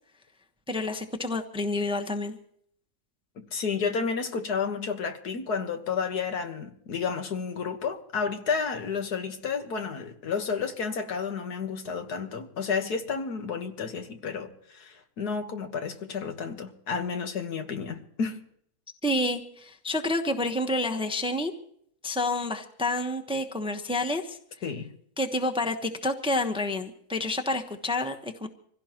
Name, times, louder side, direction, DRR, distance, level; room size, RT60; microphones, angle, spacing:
voice 1, 0.7-2.4 19.0-21.5 22.0-24.4 25.2-28.5, left 1 dB, 5° right, 0.9 m, -29 dB
voice 2, 3.4-18.4 24.6-24.9, left 5 dB, 75° left, 1.9 m, -31 dB
25.5 x 16.5 x 3.0 m
omnidirectional pair, 1.7 m